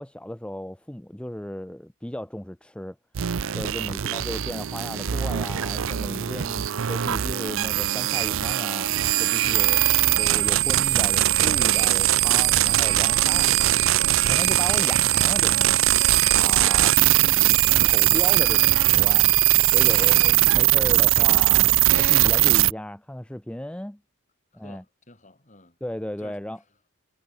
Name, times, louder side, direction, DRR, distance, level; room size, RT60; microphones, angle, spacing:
voice 1, 0.0-3.0 3.5-8.9 9.2-9.8 10.2-13.5 14.3-15.8 16.3-16.9 17.8-19.3 19.7-24.0 24.5-24.8 25.8-26.6, left 1 dB, 5° left, 0.5 m, -35 dB
sound 1, 3.1-22.7, right 14 dB, 70° right, 0.5 m, -20 dB
voice 2, 6.3-6.9 9.5-10.1 12.6-12.8 14.1-15.1 16.9-17.5 19.8-20.2 21.1-21.4 24.5-25.8 26.2-26.7, left 1 dB, 35° left, 3.8 m, -49 dB
sound 2, 10.2-16.0, right 2 dB, 45° right, 1.6 m, -42 dB
head